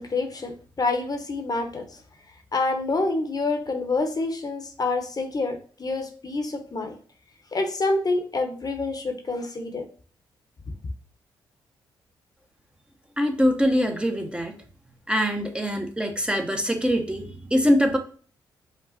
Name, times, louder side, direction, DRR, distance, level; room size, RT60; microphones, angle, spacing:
voice 1, 0.0-2.0 2.5-6.9 7.5-9.9, left 3 dB, 40° left, 6 dB, 1.1 m, -27 dB
voice 2, 13.2-14.5 15.1-18.0, equal, 10° right, 4 dB, 1.0 m, -23 dB
5.2 x 2.4 x 4.1 m, 0.43 s
supercardioid pair, 45°, 9 cm